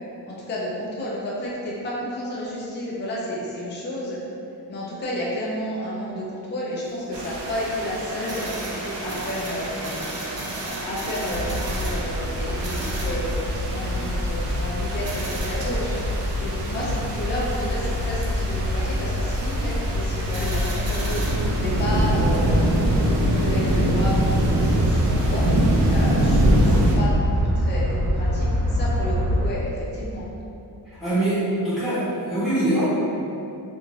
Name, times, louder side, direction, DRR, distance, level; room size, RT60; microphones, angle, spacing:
voice 1, 0.3-4.2 4.7-8.5 9.0-10.0 10.8-16.0 16.4-21.2 21.6-22.7 23.2-25.5 25.9-30.2, equal, 25° left, -5 dB, 0.5 m, -31 dB
sound 1, 6.8-24.7, right 1 dB, 40° right, 0.5 m, -37 dB
sound 2, 7.1-27.0, right 1 dB, 90° right, 0.6 m, -26 dB
sound 3, 11.3-29.5, equal, 60° right, 1.1 m, -25 dB
voice 2, 31.0-32.9, right 1 dB, ahead, -15 dB, 1.0 m, -23 dB
2.5 x 2.3 x 3.1 m, 2.6 s
cardioid pair, 105°, 41 cm